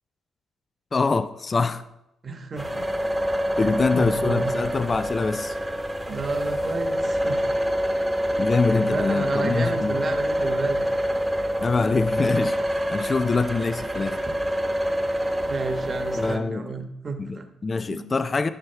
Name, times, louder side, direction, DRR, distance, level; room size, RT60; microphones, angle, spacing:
voice 1, 0.9-1.8 3.6-5.6 8.4-10.1 11.6-14.2 16.1-16.7 17.2-18.5, left 4 dB, 30° left, 0.5 m, -25 dB
voice 2, 2.2-2.9 3.6-4.5 6.1-7.5 8.7-10.8 15.5-17.5 17.9-18.1, right 4 dB, 35° right, 1.2 m, -32 dB
sound 1, 2.6-16.4, equal, 10° right, 1.1 m, -26 dB
12.5 x 5.6 x 4.5 m
cardioid pair, 90°, 0 cm